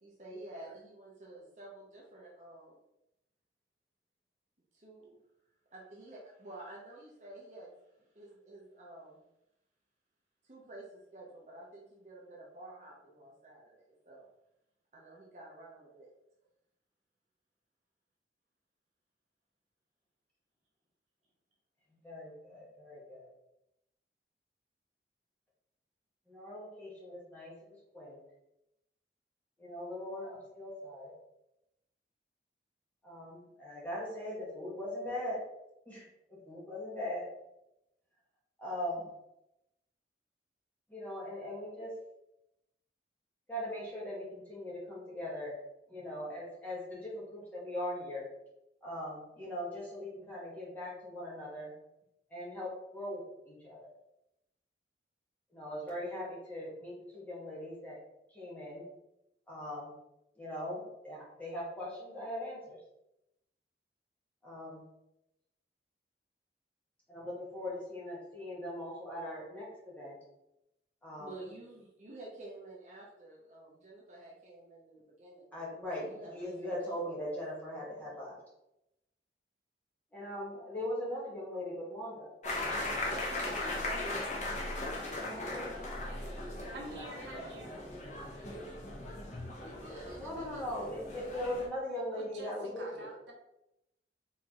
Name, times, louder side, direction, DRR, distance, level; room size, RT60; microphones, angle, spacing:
voice 1, 0.0-2.8 4.8-5.2 5.7-7.7 8.1-9.2 10.4-14.3 14.9-16.1 71.2-75.4 76.0-77.5 87.3-87.5 89.5-90.8, right 2 dB, 40° right, -4 dB, 0.8 m, -50 dB
voice 2, 22.0-23.3 26.3-27.5 27.9-28.2 29.6-31.1 33.0-35.4 35.9-37.2 38.6-39.1 40.9-41.9 43.5-45.6 45.9-48.3 48.8-51.7 52.3-53.9 55.5-58.0 58.3-58.8 59.5-60.0 60.4-62.8 64.4-64.8 67.1-70.2 71.0-71.4 75.5-78.4 80.1-82.3 85.1-85.7 90.1-93.1, left 1 dB, 10° left, -6 dB, 1.5 m, -40 dB
sound 1, 82.4-91.7, left 2 dB, 40° left, 0.9 m, -38 dB
voice 3, 86.7-87.7 91.8-93.3, right 2 dB, 75° right, 0 dB, 1.0 m, -48 dB
4.6 x 3.6 x 2.9 m, 0.86 s
head